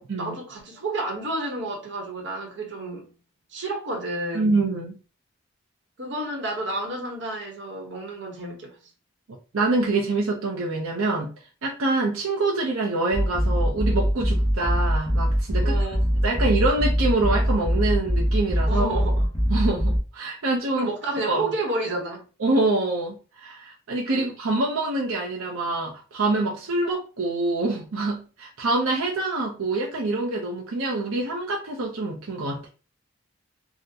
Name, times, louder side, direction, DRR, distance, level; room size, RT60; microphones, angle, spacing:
voice 1, 0.0-3.1 3.5-4.5 6.0-8.8 15.6-16.0 18.7-19.3 20.7-22.2 24.1-24.2, right 2 dB, 60° right, 0.9 m, -30 dB
voice 2, 4.3-4.9 9.5-11.3 11.6-15.8 16.2-18.9 19.5-20.9 21.3-21.4 22.4-32.7, right 2 dB, 85° right, 0.6 m, -25 dB
sound 1, 13.1-20.0, equal, 20° left, 0.6 m, -23 dB
3.7 x 2.1 x 2.7 m
head